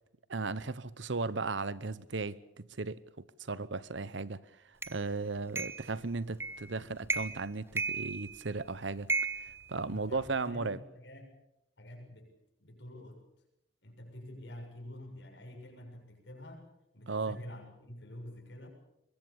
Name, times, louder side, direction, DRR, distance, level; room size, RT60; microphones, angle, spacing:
voice 1, 0.3-4.4 4.9-9.1 9.7-10.8 17.1-17.4, right 3 dB, 75° right, 0.9 m, -36 dB
sound 1, 4.8-5.0 5.6-5.9 6.4-6.7 7.0-7.5 7.8-8.6 9.1-10.3, right 4 dB, 15° right, 0.8 m, -34 dB
voice 2, 9.8-11.4 11.8-12.3 12.6-13.3 13.8-16.7 16.9-18.7, left 1 dB, 65° left, 6.9 m, -48 dB
24.0 x 21.5 x 7.1 m
head